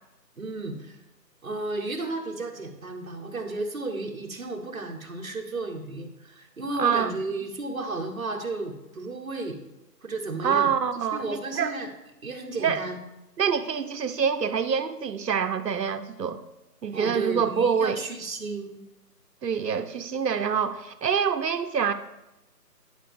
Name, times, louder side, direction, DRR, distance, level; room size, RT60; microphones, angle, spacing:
voice 1, 0.4-1.0 1.4-9.6 10.0-10.7 11.1-11.9 12.2-13.0 16.9-18.8, right 2 dB, 55° right, 2 dB, 1.0 m, -33 dB
voice 2, 6.8-7.1 10.4-11.7 12.6-12.8 13.4-16.4 16.8-18.0 19.4-21.9, right 7 dB, 75° right, 10 dB, 0.7 m, -26 dB
9.9 x 4.9 x 3.4 m, 0.94 s
figure-of-eight pair, 180°, 50 cm